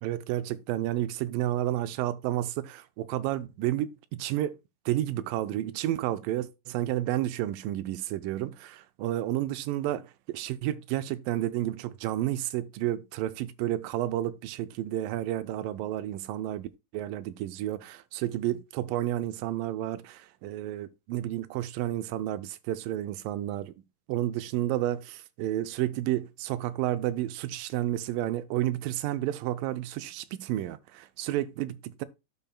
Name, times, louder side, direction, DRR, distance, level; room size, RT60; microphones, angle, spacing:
voice 1, 0.0-4.6 4.9-23.8 24.1-32.1, right 13 dB, 85° right, 2.3 m, -31 dB
12.5 x 5.3 x 2.3 m
omnidirectional pair, 3.9 m